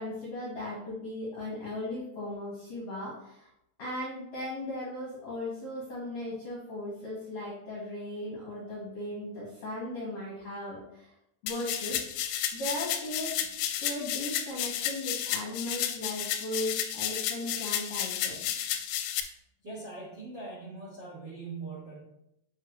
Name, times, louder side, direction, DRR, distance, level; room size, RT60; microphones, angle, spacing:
voice 1, 0.0-3.5 3.8-11.1 11.4-13.4 13.7-18.5, left 1 dB, 60° left, -5 dB, 1.8 m, -37 dB
sound 1, 11.5-19.2, left 10 dB, 85° left, 3.1 m, -32 dB
voice 2, 19.6-22.0, right 3 dB, 50° right, -6 dB, 1.3 m, -41 dB
8.1 x 6.6 x 3.1 m, 0.83 s
omnidirectional pair, 5.7 m